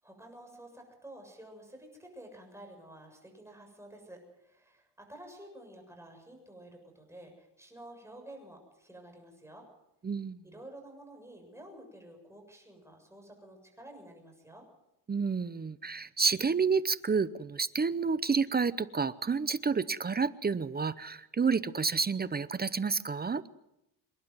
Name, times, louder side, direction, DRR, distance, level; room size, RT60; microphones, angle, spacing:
voice 1, 0.0-9.6 10.4-14.6, right 1 dB, 5° right, 2 dB, 7.3 m, -51 dB
voice 2, 10.0-10.4 15.1-23.4, right 5 dB, 25° right, 16 dB, 0.7 m, -30 dB
26.5 x 11.0 x 9.5 m, 0.86 s
cardioid pair, 115°, 40 cm